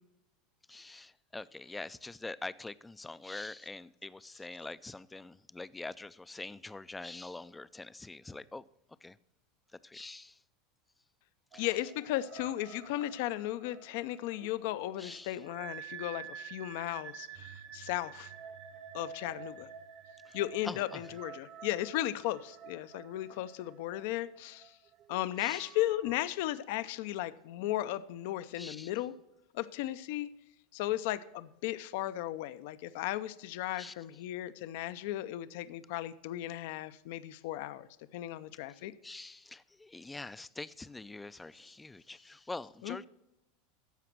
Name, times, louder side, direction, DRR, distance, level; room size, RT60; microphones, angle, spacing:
voice 1, 0.7-8.6 9.0-9.2 9.8-10.4 11.5-11.7 15.0-15.4 20.3-20.4 20.6-21.0 25.4-25.7 28.6-28.9 33.8-33.9 39.0-43.0, left 2 dB, 10° left, 0.4 m, -44 dB
sound 1, 11.5-26.2, right 8 dB, 45° right, 0.9 m, -49 dB
voice 2, 11.6-18.3 18.9-19.7 20.3-24.7 25.1-29.1 29.5-30.3 30.7-37.9 38.1-38.9 42.8-43.0, left 14 dB, 65° left, 0.5 m, -36 dB
14.0 x 5.0 x 6.0 m
hypercardioid pair, 110°, 0 cm